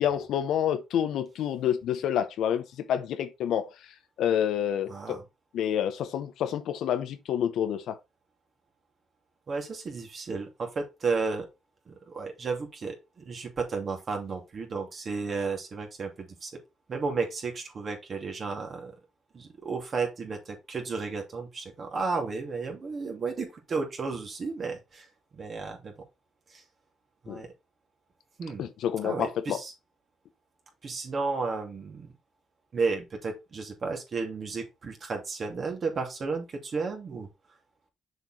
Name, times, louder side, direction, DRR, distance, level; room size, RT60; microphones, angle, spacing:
voice 1, 0.0-3.7 4.2-5.2 5.5-8.0 27.3-27.4 28.6-29.6, left 9 dB, 80° left, 1.0 m, -28 dB
voice 2, 4.9-5.2 9.5-11.5 11.9-16.6 16.9-18.9 19.3-25.1 25.3-25.9 26.5-26.6 27.2-27.5 28.4-28.6 29.0-29.7 30.8-32.1 32.7-37.3, right 4 dB, 45° right, 2.6 m, -33 dB
6.7 x 4.6 x 4.3 m
cardioid pair, 90°, 0 cm